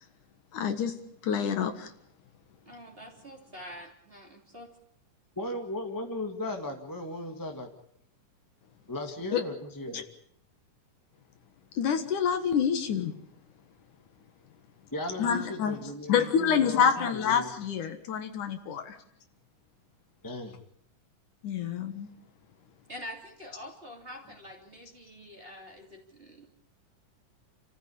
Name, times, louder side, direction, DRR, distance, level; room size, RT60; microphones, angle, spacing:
voice 1, 0.5-1.0 1.2-1.9 9.3-9.4 9.9-10.0 11.7-13.1 15.2-15.7 16.1-19.0 21.4-22.1, left 7 dB, 70° left, 8 dB, 3.0 m, -27 dB
voice 2, 2.6-4.7 22.9-26.5, equal, 15° right, 2 dB, 3.1 m, -45 dB
voice 3, 5.3-7.7 8.9-10.0 14.9-17.5 20.2-20.6, left 1 dB, 10° left, 3 dB, 1.2 m, -36 dB
28.5 x 14.5 x 8.6 m, 0.68 s
omnidirectional pair, 3.9 m